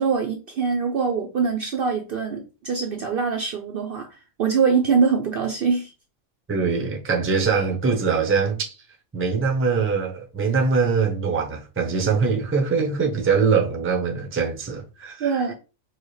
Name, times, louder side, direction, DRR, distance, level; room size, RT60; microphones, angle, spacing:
voice 1, 0.0-5.9 15.2-15.5, right 5 dB, 60° right, 0.6 m, -23 dB
voice 2, 6.5-8.6 9.1-15.5, right 5 dB, 15° right, 0.5 m, -23 dB
4.8 x 2.2 x 3.1 m
omnidirectional pair, 1.3 m